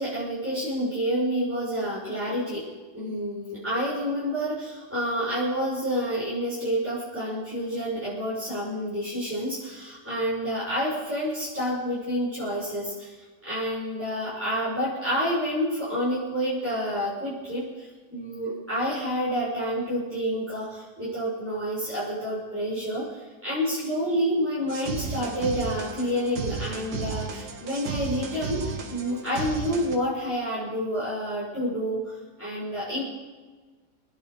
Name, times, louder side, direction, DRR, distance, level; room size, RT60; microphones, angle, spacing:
voice 1, 0.0-2.6 2.9-33.0, equal, 5° right, -11 dB, 6.6 m, -29 dB
sound 1, 24.7-30.0, right 5 dB, 75° right, 2.0 m, -34 dB
26.5 x 10.5 x 5.2 m, 1.3 s
omnidirectional pair, 1.8 m